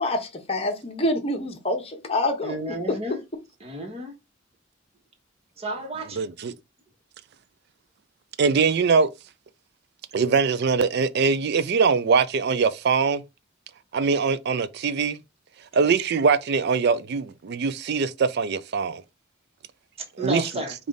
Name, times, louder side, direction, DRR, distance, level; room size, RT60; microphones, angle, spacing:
voice 1, 0.0-3.0, left 1 dB, 30° left, 1.0 m, -27 dB
voice 2, 2.4-3.2 3.6-4.1 5.6-6.2 20.2-20.7, right 1 dB, 30° right, 1.2 m, -31 dB
voice 3, 6.1-6.5 8.4-9.1 10.1-13.2 13.9-15.2 15.7-19.0 20.2-20.5, right 5 dB, 55° right, 0.4 m, -22 dB
5.1 x 2.5 x 3.8 m
head